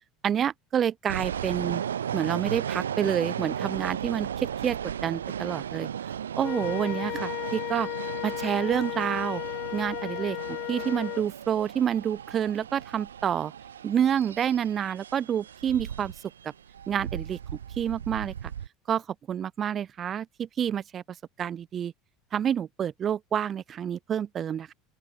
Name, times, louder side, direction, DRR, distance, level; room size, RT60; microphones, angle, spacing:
voice 1, 0.2-1.8 2.1-5.9 6.4-7.9 8.2-9.4 9.7-13.5 13.8-16.1 16.4-16.5 16.9-17.4 17.8-18.5 18.9-21.0 21.4-21.9 22.3-24.7, right 9 dB, 35° right, 0.6 m, -28 dB
sound 1, 1.1-18.7, right 9 dB, 75° right, 0.9 m, -36 dB
Wind instrument woodwind instrument, 6.4-11.3, left 22 dB, 50° left, 0.5 m, -34 dB
open air
figure-of-eight pair, 70°, 0 cm